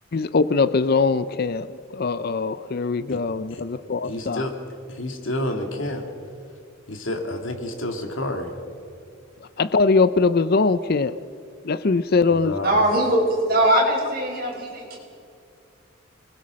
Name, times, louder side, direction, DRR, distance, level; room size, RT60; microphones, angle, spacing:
voice 1, 0.1-4.5 9.6-11.2 11.6-12.6, left 4 dB, 50° left, 14 dB, 0.5 m, -21 dB
voice 2, 4.1-4.5 4.9-6.1 6.9-8.5 12.3-12.7, left 1 dB, 75° left, 4 dB, 2.5 m, -29 dB
voice 3, 12.6-15.0, right 1 dB, 50° right, 0 dB, 5.0 m, -21 dB
25.5 x 20.5 x 6.4 m, 2.4 s
head